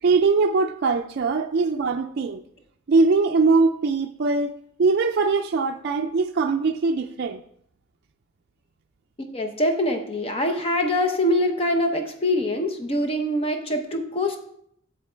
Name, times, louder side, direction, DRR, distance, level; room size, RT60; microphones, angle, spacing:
voice 1, 0.0-2.4 2.9-4.5 4.8-7.4, right 4 dB, 55° right, 0.4 m, -21 dB
voice 2, 9.2-14.4, left 1 dB, 30° left, 0.7 m, -24 dB
8.2 x 7.4 x 4.3 m
head